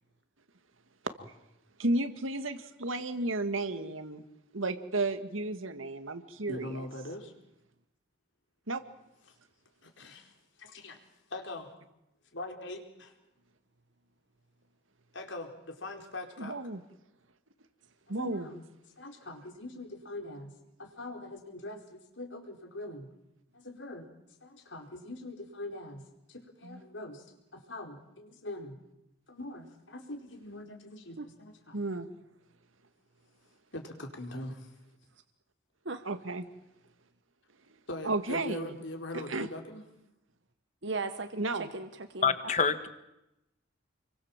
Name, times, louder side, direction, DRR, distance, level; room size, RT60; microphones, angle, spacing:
voice 1, 1.8-4.2 4.5-6.8 8.7-8.8 16.4-16.8 18.1-18.5 26.6-26.8 31.7-32.1 36.1-36.5 38.0-38.7 39.1-39.5 41.4-41.7, right 2 dB, 90° right, 2.1 m, -33 dB
voice 2, 6.5-7.3 9.3-9.4 9.8-10.3 10.6-11.0 11.3-11.7 12.3-13.1 15.1-16.6 18.1-18.6 19.0-20.5 20.8-23.1 23.5-24.1 24.4-27.3 27.5-28.8 29.3-31.8 33.7-34.7 37.9-39.8, left 1 dB, 70° left, 4.6 m, -42 dB
voice 3, 40.8-42.5, right 3 dB, 65° right, 1.4 m, -38 dB
voice 4, 42.2-42.9, left 5 dB, 35° left, 1.7 m, -26 dB
29.5 x 23.5 x 7.5 m
head